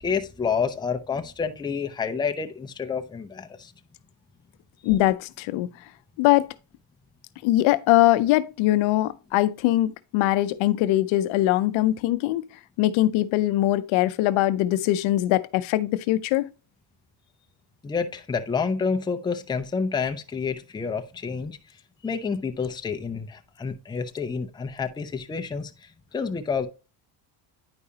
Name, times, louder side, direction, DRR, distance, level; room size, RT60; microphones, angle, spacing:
voice 1, 0.0-3.7 17.8-21.8 22.0-26.7, left 5 dB, 10° left, 0.5 m, -29 dB
voice 2, 4.8-5.7 6.2-6.5 7.4-12.5 12.8-16.5, left 15 dB, 85° left, 0.6 m, -22 dB
9.7 x 4.9 x 2.7 m
cardioid pair, 135°, 46 cm